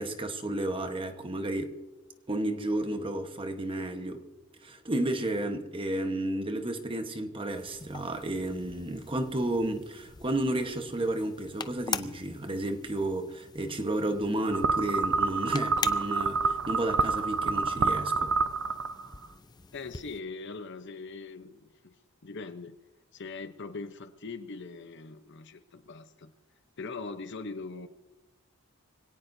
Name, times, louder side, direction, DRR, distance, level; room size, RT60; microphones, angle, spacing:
voice 1, 0.0-1.7 2.3-4.2 4.6-18.3, right 1 dB, 25° right, 1.2 m, -32 dB
sound 1, 7.5-20.2, left 6 dB, 20° left, 0.5 m, -43 dB
sound 2, 14.5-19.3, right 4 dB, 65° right, 0.6 m, -28 dB
voice 2, 19.7-22.0 22.2-22.8 23.1-26.3 26.8-27.9, left 3 dB, 55° left, 0.8 m, -41 dB
24.5 x 17.5 x 2.7 m
head